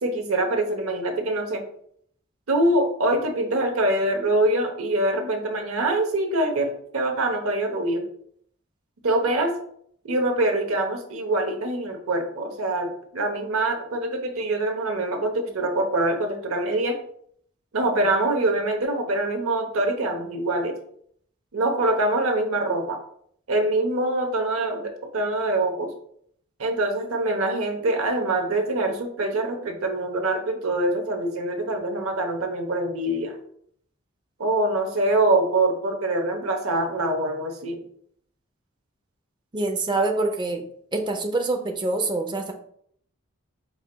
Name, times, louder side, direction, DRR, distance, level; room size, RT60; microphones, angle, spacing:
voice 1, 0.0-1.6 2.5-8.0 9.0-9.5 10.0-16.9 17.7-20.7 21.5-23.0 23.5-25.9 26.6-33.3 34.4-37.8, right 2 dB, 90° right, 4 dB, 0.9 m, -24 dB
voice 2, 39.5-40.6 40.9-42.5, right 2 dB, 20° right, 4 dB, 0.5 m, -25 dB
4.7 x 4.2 x 2.2 m, 0.66 s
head